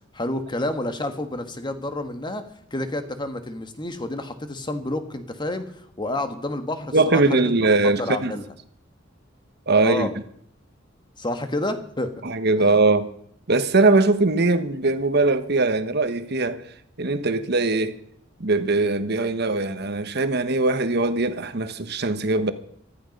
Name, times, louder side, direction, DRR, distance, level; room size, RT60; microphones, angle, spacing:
voice 1, 0.1-7.4 7.8-8.4 9.8-10.1 11.2-12.1 12.6-12.7, left 1 dB, 25° left, 1.5 m, -29 dB
voice 2, 6.9-8.4 9.7-10.1 12.2-13.1 13.5-16.7 17.0-18.0 18.4-22.5, right 3 dB, 55° right, 1.2 m, -21 dB
15.5 x 13.5 x 5.4 m
head